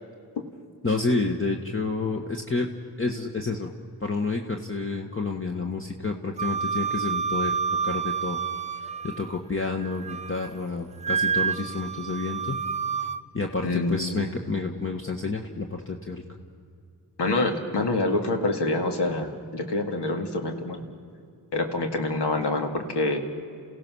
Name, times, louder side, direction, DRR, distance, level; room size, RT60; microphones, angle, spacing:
voice 1, 0.8-2.7 3.0-3.7 4.0-7.6 7.8-8.4 8.8-12.6 13.3-16.2, left 3 dB, 30° left, 2 dB, 1.5 m, -29 dB
Wind instrument woodwind instrument, 6.4-9.4 9.8-10.5 11.0-13.2, right 6 dB, 15° right, 0.8 m, -29 dB
voice 2, 13.6-14.3 17.2-20.8 21.5-23.2, left 2 dB, 80° left, 4 dB, 2.2 m, -26 dB
28.5 x 16.0 x 6.3 m, 2.4 s
cardioid pair, 55°, 41 cm